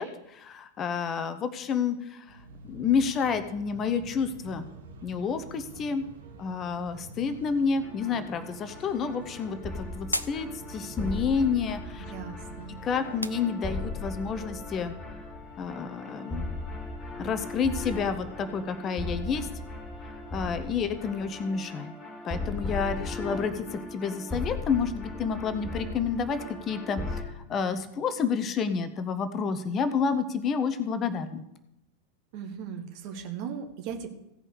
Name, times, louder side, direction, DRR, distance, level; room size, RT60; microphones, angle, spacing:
voice 1, 0.0-2.4 2.6-4.7 5.0-6.0 6.4-12.1 12.8-15.0 15.6-16.6 17.2-19.5 20.3-21.9 22.2-31.4, left 6 dB, 30° left, 11 dB, 0.8 m, -29 dB
sound 1, 2.3-13.4, right 5 dB, 65° right, 1.4 m, -48 dB
sound 2, 7.8-27.2, left 2 dB, 10° left, 2.4 m, -38 dB
sound 3, 8.6-14.1, equal, 90° left, 0.4 m, -41 dB
voice 2, 12.1-12.7 32.3-34.1, right 7 dB, 45° right, 5 dB, 1.5 m, -37 dB
16.0 x 5.5 x 6.4 m, 0.87 s
figure-of-eight pair, 90°, 0 cm